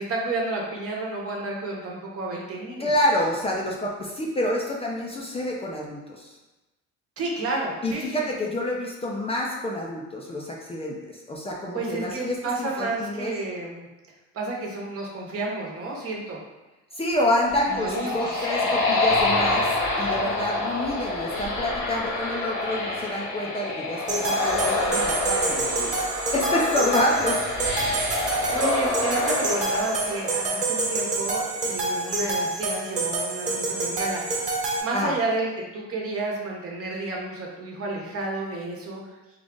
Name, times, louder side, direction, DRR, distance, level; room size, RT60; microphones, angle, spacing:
voice 1, 0.0-2.9 7.2-8.3 11.7-13.9 14.3-16.4 17.7-18.5 28.5-34.4 34.8-39.0, right 2 dB, 50° right, -2 dB, 1.1 m, -31 dB
voice 2, 2.8-6.3 7.8-13.3 16.9-25.9 26.3-27.4 34.9-35.1, left 1 dB, 20° left, -2 dB, 0.5 m, -28 dB
sound 1, 17.3-30.9, left 2 dB, 70° left, 1.0 m, -27 dB
sound 2, 24.1-34.8, right 2 dB, 25° right, 1.2 m, -27 dB
3.7 x 2.4 x 3.7 m, 1.1 s
cardioid pair, 100°, 31 cm